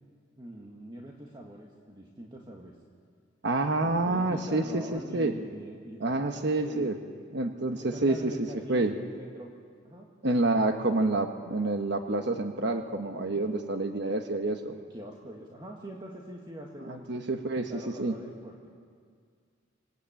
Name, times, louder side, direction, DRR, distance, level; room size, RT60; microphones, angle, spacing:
voice 1, 0.4-2.8 3.8-7.0 7.7-9.5 9.8-10.1 13.3-13.5 14.7-17.1 17.6-18.7, right 1 dB, 25° right, -1 dB, 1.7 m, -44 dB
voice 2, 3.4-5.3 6.0-7.0 7.3-8.3 8.7-8.9 10.2-14.7 17.1-17.7 18.0-18.1, right 2 dB, 65° right, 6 dB, 1.2 m, -28 dB
26.0 x 16.5 x 9.0 m, 2.1 s
head